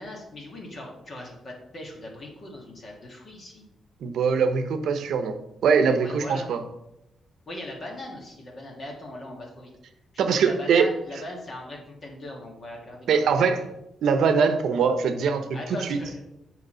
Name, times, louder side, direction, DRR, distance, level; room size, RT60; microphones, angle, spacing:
voice 1, 0.0-3.6 6.0-6.5 7.5-9.7 10.3-13.7 15.5-16.2, left 1 dB, 35° left, -1 dB, 1.7 m, -39 dB
voice 2, 4.0-6.6 10.2-10.9 13.1-13.6 14.0-15.5 15.8-16.0, right 6 dB, 70° right, 8 dB, 0.9 m, -22 dB
8.2 x 4.7 x 5.5 m, 0.87 s
cardioid pair, 150°, 0 cm